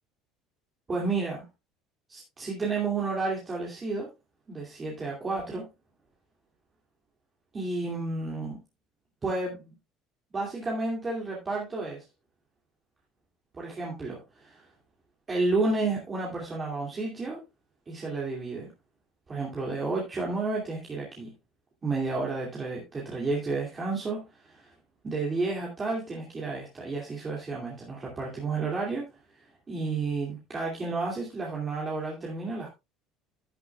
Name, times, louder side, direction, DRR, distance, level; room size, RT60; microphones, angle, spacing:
voice 1, 0.9-1.5 2.1-4.1 4.5-5.6 7.5-8.6 9.2-9.8 10.3-12.0 13.5-14.7 15.3-17.4 17.9-18.7 19.3-21.3 21.8-24.7 25.0-29.1 29.3-32.7, right 3 dB, 20° right, 2.6 m, -31 dB
11.5 x 10.5 x 2.4 m
cardioid pair, 150°, 0 cm